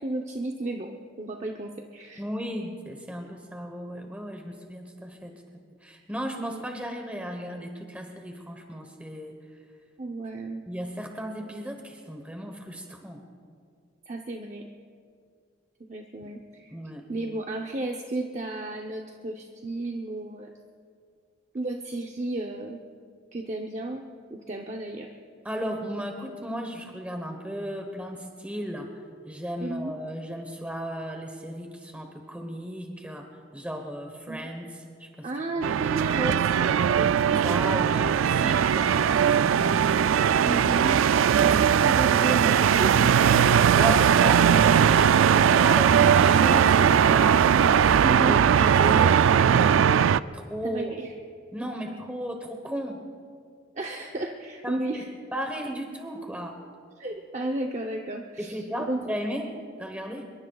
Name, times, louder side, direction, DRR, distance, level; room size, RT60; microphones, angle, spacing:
voice 1, 0.0-2.2 6.4-6.6 10.0-10.6 14.1-14.6 15.9-16.7 17.1-20.5 21.5-22.8 23.3-25.1 29.6-29.9 34.3-34.5 35.2-37.1 40.4-41.0 41.4-43.3 48.0-48.4 50.6-51.1 53.7-55.0 57.0-58.5 58.9-59.5, right 2 dB, 35° right, 2 dB, 0.7 m, -33 dB
voice 2, 2.2-5.4 5.8-9.6 10.7-13.2 16.2-16.3 16.7-17.0 25.4-28.9 29.3-35.3 37.4-39.9 43.7-47.6 48.3-49.2 49.5-49.9 50.3-50.9 51.5-53.0 54.6-55.0 55.3-56.6 58.4-60.3, equal, 5° right, 3 dB, 1.0 m, -35 dB
sound 1, 35.6-50.2, right 8 dB, 85° right, 0.3 m, -19 dB
25.5 x 23.0 x 2.4 m, 2.2 s
head